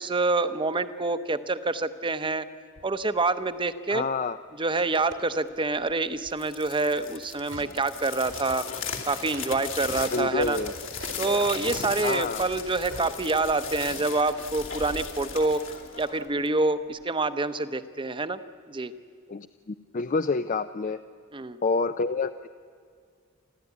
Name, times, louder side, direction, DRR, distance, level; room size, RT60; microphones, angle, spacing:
voice 1, 0.0-2.4 2.8-4.0 4.6-8.7 9.1-10.6 11.2-15.6 16.0-18.4 18.7-18.9 21.3-21.6, right 3 dB, 25° right, 12 dB, 0.8 m, -27 dB
sound 1, 2.8-3.0 3.7-3.8 4.6-5.4 7.5-7.8 8.2-12.0 12.9-13.2 13.5-13.6, right 2 dB, 85° right, 2.6 m, -40 dB
voice 2, 3.9-4.4 10.1-10.7 12.0-12.4 19.3-21.0 21.6-22.5, left 4 dB, 40° left, 10 dB, 0.5 m, -28 dB
sound 2, 6.3-16.6, left 6 dB, 65° left, 2.6 m, -37 dB
29.5 x 12.5 x 9.7 m, 2.1 s
head